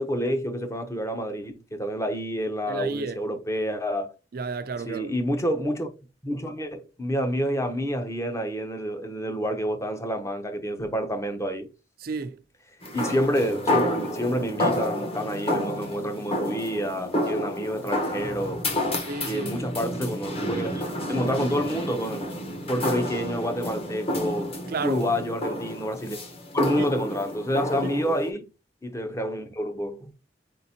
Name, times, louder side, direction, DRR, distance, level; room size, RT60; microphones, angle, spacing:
voice 1, 0.0-4.1 4.8-5.9 6.2-11.7 12.9-18.9 19.3-20.8 21.1-22.3 22.7-24.6 24.8-26.2 26.5-28.4 28.8-30.1, equal, 15° left, 0.7 m, -28 dB
voice 2, 2.7-3.2 4.3-5.1 12.0-12.4 19.1-19.6 24.7-25.0 26.8-26.9 27.8-27.9, right 4 dB, 60° right, 0.4 m, -32 dB
sound 1, 12.8-28.3, left 1 dB, 35° left, 1.1 m, -30 dB
4.3 x 3.8 x 2.8 m
head